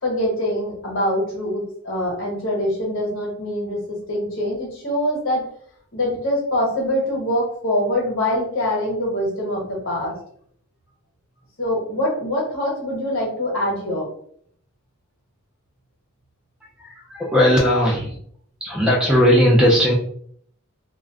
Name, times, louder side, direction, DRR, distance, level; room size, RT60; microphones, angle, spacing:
voice 1, 0.0-5.5 5.9-10.2 11.6-14.1, left 1 dB, 60° left, -3 dB, 1.1 m, -24 dB
voice 2, 16.8-18.1 18.6-19.9, equal, 5° right, -4 dB, 0.4 m, -17 dB
2.4 x 2.2 x 3.4 m, 0.62 s
head